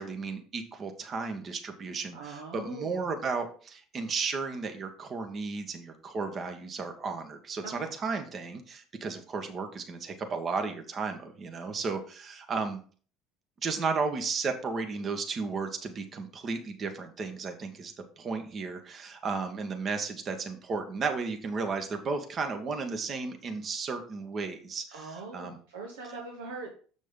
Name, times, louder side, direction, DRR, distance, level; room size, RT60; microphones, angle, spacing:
voice 1, 0.0-12.8 13.6-25.6, right 4 dB, 40° right, 6 dB, 1.6 m, -34 dB
voice 2, 2.1-3.0 7.6-7.9 24.9-26.7, right 3 dB, 80° right, 1 dB, 1.2 m, -42 dB
7.4 x 6.0 x 3.9 m, 0.41 s
hypercardioid pair, 65°, 0 cm